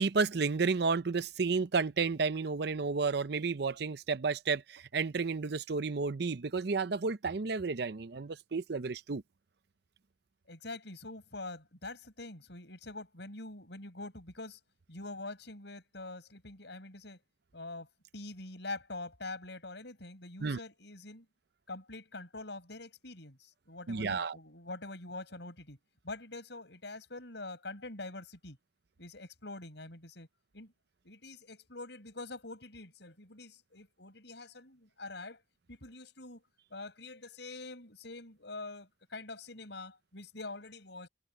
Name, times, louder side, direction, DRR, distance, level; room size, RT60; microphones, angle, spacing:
voice 1, 0.0-9.2 20.4-20.6 23.9-24.4, right 4 dB, 60° right, 0.6 m, -31 dB
voice 2, 10.5-14.6 14.9-17.2 17.5-17.9 18.1-21.3 21.7-25.8 26.0-28.6 29.0-30.3 30.5-30.7 31.0-35.4 35.7-36.4 36.7-41.1, left 2 dB, 65° left, 6.7 m, -45 dB
head